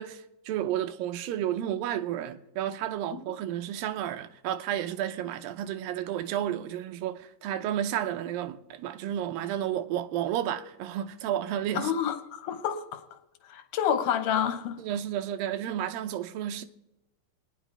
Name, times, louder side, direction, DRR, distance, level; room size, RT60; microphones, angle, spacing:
voice 1, 0.0-11.9 14.8-16.7, right 11 dB, 90° right, 2.4 m, -32 dB
voice 2, 11.7-13.0 13.4-14.8, left 9 dB, 70° left, 2.4 m, -29 dB
26.5 x 9.9 x 3.3 m
omnidirectional pair, 4.0 m